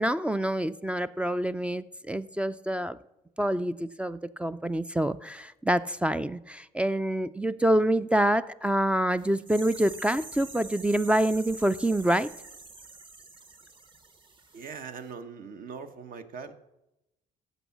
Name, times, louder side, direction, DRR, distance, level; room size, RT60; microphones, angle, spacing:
voice 1, 0.0-3.0 3.4-12.3, right 1 dB, 5° right, 14 dB, 0.3 m, -26 dB
sound 1, 9.2-14.8 15.1-15.2, right 3 dB, 30° right, 1.0 m, -46 dB
voice 2, 14.5-16.5, right 5 dB, 55° right, 9 dB, 1.0 m, -41 dB
14.0 x 5.5 x 7.1 m, 0.92 s
cardioid pair, 110°, 17 cm